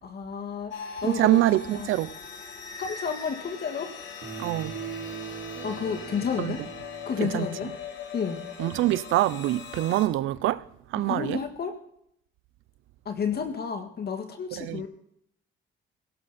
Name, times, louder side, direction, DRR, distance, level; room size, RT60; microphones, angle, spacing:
voice 1, 0.0-0.7 1.0-1.4 1.7-1.9 2.8-3.9 5.6-6.6 7.1-7.7 8.1-8.4 11.0-11.7 13.1-14.9, left 6 dB, 55° left, 1.9 m, -31 dB
sound 1, 0.7-10.1, left 6 dB, 70° left, 3.0 m, -40 dB
voice 2, 1.0-2.1 4.4-4.7 6.4-6.5 7.2-7.5 8.6-10.6 10.9-11.4 14.6-14.8, right 15 dB, 90° right, 0.6 m, -25 dB
sound 2, 4.2-7.8, right 7 dB, 65° right, 4.5 m, -40 dB
16.5 x 14.0 x 4.3 m
cardioid pair, 90°, 20 cm